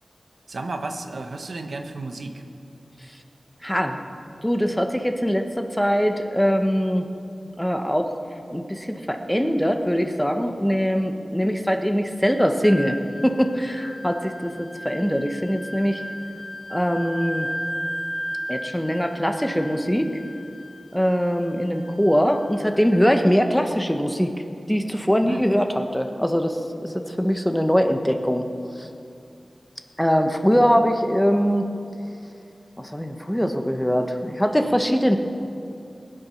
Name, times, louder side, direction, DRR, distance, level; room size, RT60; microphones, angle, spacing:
voice 1, 0.5-2.4 25.2-25.5 30.6-30.9, right 2 dB, 70° right, 5 dB, 1.0 m, -33 dB
voice 2, 3.6-4.0 4.4-7.0 7.6-8.1 8.5-13.0 13.2-16.0 16.7-17.5 18.5-20.1 20.9-24.3 24.7-28.4 28.8-28.9 30.0-31.7 32.8-35.2, equal, 5° left, 6 dB, 0.9 m, -22 dB
Wind instrument woodwind instrument, 12.6-23.0, equal, 40° right, 2.4 m, -35 dB
20.5 x 8.9 x 5.7 m, 2.6 s
wide cardioid pair, 80°, 0 cm